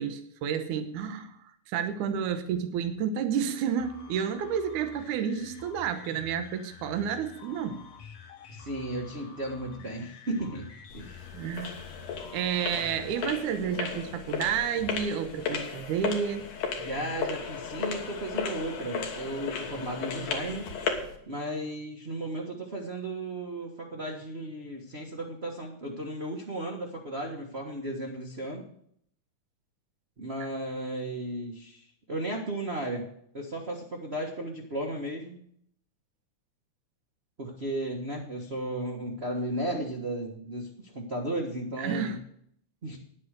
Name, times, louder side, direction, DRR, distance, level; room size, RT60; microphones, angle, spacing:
voice 1, 0.0-7.8 11.3-11.8 12.3-16.5 30.4-30.5 41.8-42.2, right 7 dB, 85° right, 8 dB, 2.4 m, -30 dB
sound 1, 3.8-13.4, left 6 dB, 65° left, 2.3 m, -49 dB
voice 2, 8.5-10.7 10.9-11.3 16.8-20.7 21.3-28.7 30.2-33.1 33.3-35.3 37.4-42.2 42.8-43.0, right 1 dB, 35° right, 0 dB, 1.0 m, -35 dB
sound 2, 10.9-21.2, left 6 dB, 85° left, 3.0 m, -35 dB
10.0 x 8.4 x 6.5 m, 0.67 s
omnidirectional pair, 3.4 m